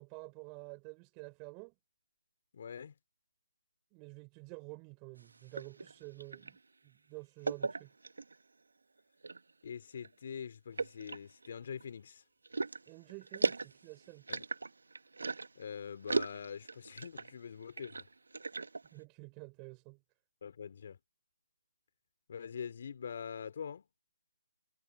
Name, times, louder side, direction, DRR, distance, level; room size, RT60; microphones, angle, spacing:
voice 1, 0.0-1.7 3.9-6.6 6.8-7.9 12.9-14.2 18.9-20.0, right 34 dB, 20° right, 4.4 m, -49 dB
voice 2, 2.5-2.9 9.6-12.2 14.3-14.4 15.5-18.1 20.4-21.0 22.3-23.8, left 7 dB, 50° left, 3.3 m, -44 dB
sound 1, 5.2-6.6 7.4-8.4 9.0-9.5 10.0-10.1 10.8-11.8 12.4-15.6 16.1-17.3 17.6-18.9, right 3 dB, 80° right, 1.6 m, -37 dB
figure-of-eight pair, 155°, 0 cm